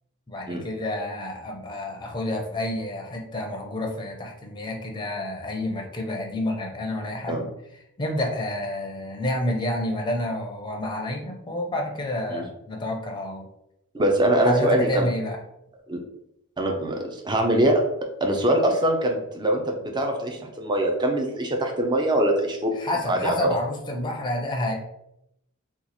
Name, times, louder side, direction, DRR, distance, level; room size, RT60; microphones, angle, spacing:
voice 1, 0.3-7.5 8.0-13.5 14.4-15.4 22.8-24.7, left 1 dB, 20° left, 2 dB, 0.6 m, -29 dB
voice 2, 13.9-15.1 15.9-16.0 16.6-17.8 18.2-22.7 23.1-23.5, right 1 dB, 20° right, 2 dB, 0.5 m, -23 dB
3.0 x 2.4 x 4.0 m, 0.81 s
head